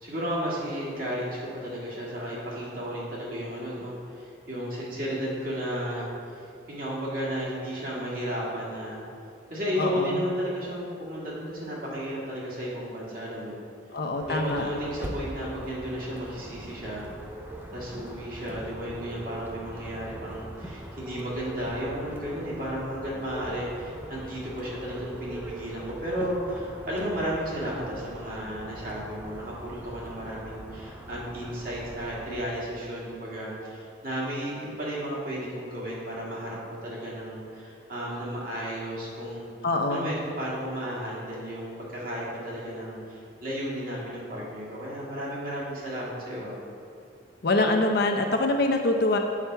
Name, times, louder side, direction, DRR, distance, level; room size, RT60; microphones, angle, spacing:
voice 1, 0.0-6.4 6.7-9.0 9.5-13.7 14.3-17.1 17.7-39.5 39.9-46.6, equal, 45° right, -5 dB, 1.7 m, -33 dB
voice 2, 9.8-10.2 13.9-14.7 39.6-40.1 47.4-49.2, left 2 dB, 55° left, 3 dB, 0.6 m, -24 dB
sound 1, 14.2-32.5, equal, 10° right, 0.4 m, -43 dB
sound 2, 17.0-26.7, right 2 dB, 65° right, 1.4 m, -46 dB
7.2 x 5.7 x 4.5 m, 2.4 s
head